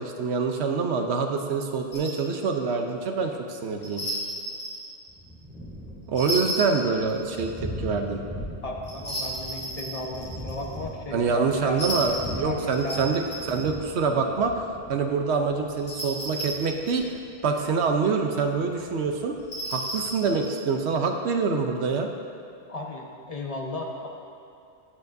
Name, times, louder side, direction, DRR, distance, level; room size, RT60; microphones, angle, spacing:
voice 1, 0.0-4.1 6.1-8.2 11.1-17.1 17.4-19.3 19.7-22.1, right 4 dB, 80° right, 4 dB, 1.0 m, -26 dB
sound 1, 1.9-2.2 3.8-4.9 6.2-7.4 8.8-10.8 11.7-13.7 15.8-17.1 19.4-20.7, right 1 dB, 80° left, 2.9 m, -33 dB
Thunder, 5.1-20.4, equal, 5° right, 2.1 m, -41 dB
voice 2, 8.6-13.6 14.2-14.3 22.7-24.1, left 2 dB, 35° left, 0 dB, 1.1 m, -36 dB
16.0 x 8.2 x 2.7 m, 2.6 s
omnidirectional pair, 1.1 m